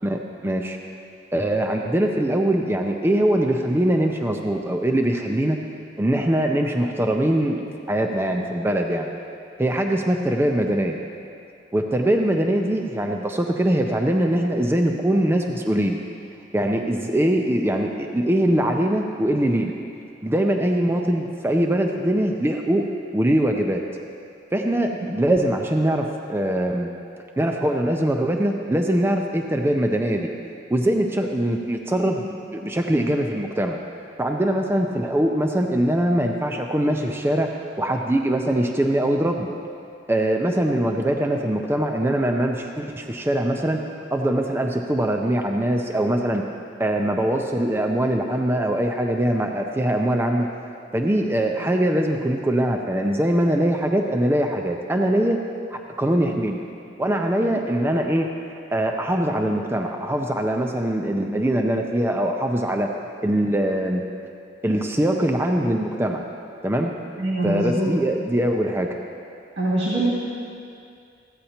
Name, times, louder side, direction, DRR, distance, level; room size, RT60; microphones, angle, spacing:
voice 1, 0.0-0.8 1.3-5.6 6.0-7.6 7.9-9.1 9.6-11.0 11.7-16.0 16.5-19.7 20.2-22.9 23.1-23.8 24.5-26.9 27.4-30.3 30.7-33.8 34.2-37.5 37.8-39.5 40.1-43.8 44.1-46.4 46.8-50.5 50.9-55.4 55.7-56.6 57.0-58.3 58.7-62.9 63.2-64.0 64.6-66.2 66.6-66.9 67.4-68.9, right 1 dB, 10° right, 2 dB, 0.4 m, -22 dB
voice 2, 67.2-67.9 69.6-70.2, right 1 dB, 70° right, -8 dB, 2.0 m, -23 dB
15.0 x 8.8 x 2.9 m, 2.5 s
head